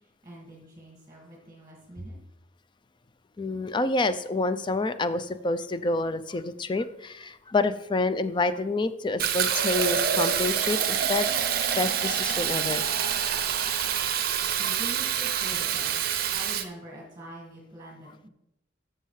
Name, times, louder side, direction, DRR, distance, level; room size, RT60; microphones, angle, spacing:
voice 1, 0.0-2.2 14.4-18.3, equal, 20° right, -3 dB, 1.9 m, -44 dB
voice 2, 3.4-11.3 11.7-12.8 13.8-14.2, left 3 dB, 25° left, 12 dB, 0.4 m, -28 dB
Fill (with liquid), 9.2-16.6, right 8 dB, 50° right, 0.6 m, -26 dB
13.0 x 6.6 x 3.2 m, 0.86 s
head